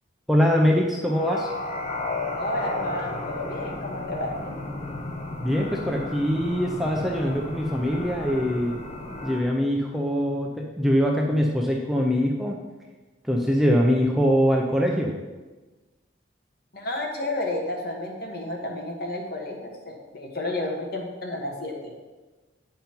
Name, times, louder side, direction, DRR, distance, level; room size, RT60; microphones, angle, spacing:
voice 1, 0.3-1.5 5.4-8.8 9.2-12.6 13.2-15.1, equal, ahead, -1 dB, 0.6 m, -23 dB
sound 1, 1.1-9.4, left 2 dB, 35° left, 0.8 m, -33 dB
voice 2, 2.4-4.5 16.7-21.9, left 1 dB, 50° left, 0 dB, 1.4 m, -31 dB
9.0 x 5.4 x 4.5 m, 1.2 s
head